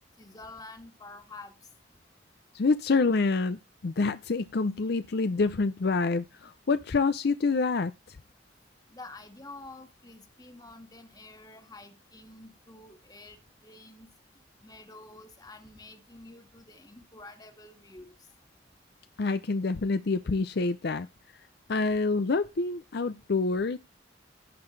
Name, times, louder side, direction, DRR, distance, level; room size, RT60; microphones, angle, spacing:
voice 1, 0.2-1.5 8.9-13.4 13.6-14.1 14.6-18.1, left 2 dB, 20° left, 1.7 m, -48 dB
voice 2, 2.5-8.2 19.2-21.1 21.7-23.8, left 3 dB, 60° left, 0.5 m, -27 dB
17.0 x 5.8 x 3.2 m
head